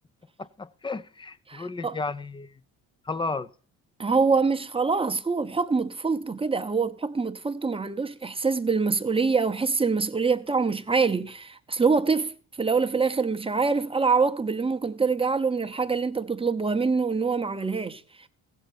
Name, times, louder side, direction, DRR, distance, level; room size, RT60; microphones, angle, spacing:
voice 1, 0.4-2.5 3.1-3.5, left 3 dB, 15° left, 0.5 m, -33 dB
voice 2, 1.5-2.0 4.0-12.3 12.6-18.0, right 4 dB, 15° right, 0.8 m, -25 dB
15.5 x 8.0 x 4.4 m
cardioid pair, 80°, 35 cm